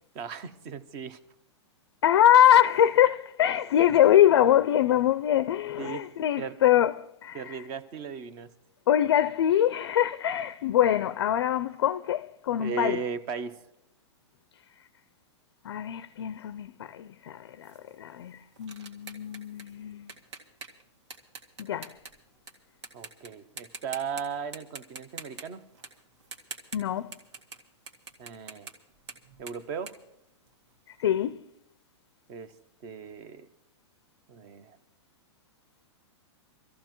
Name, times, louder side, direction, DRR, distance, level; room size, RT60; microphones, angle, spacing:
voice 1, 0.1-1.2 5.8-6.0 6.4-6.6 7.3-8.5 12.6-13.5 22.9-25.6 28.2-28.7 29.4-29.9 32.3-32.5 32.8-33.5 34.3-34.8, right 6 dB, 20° right, 0.5 m, -36 dB
voice 2, 2.0-7.6 8.9-13.0 15.6-20.1 21.6-22.0 26.7-27.1 31.0-31.4, left 11 dB, 55° left, 0.4 m, -23 dB
sound 1, 17.6-22.5 22.8-23.3 23.6-24.2 24.5-27.6 27.9-30.9, right 4 dB, 75° right, 2.0 m, -45 dB
24.5 x 14.5 x 3.0 m
supercardioid pair, 180°, 15 cm